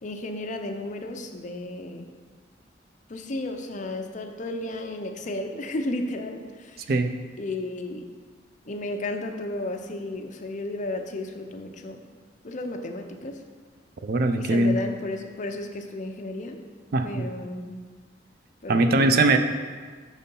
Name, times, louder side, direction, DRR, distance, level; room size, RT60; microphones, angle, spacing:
voice 1, 0.0-2.1 3.1-6.9 7.4-8.0 8.7-12.0 12.4-13.4 14.4-16.6 17.0-17.8 18.6-19.2, left 2 dB, 40° left, 5 dB, 0.5 m, -33 dB
voice 2, 14.0-14.8 16.9-17.3 18.7-19.4, right 2 dB, 55° right, 8 dB, 0.4 m, -21 dB
6.5 x 4.1 x 5.3 m, 1.6 s
head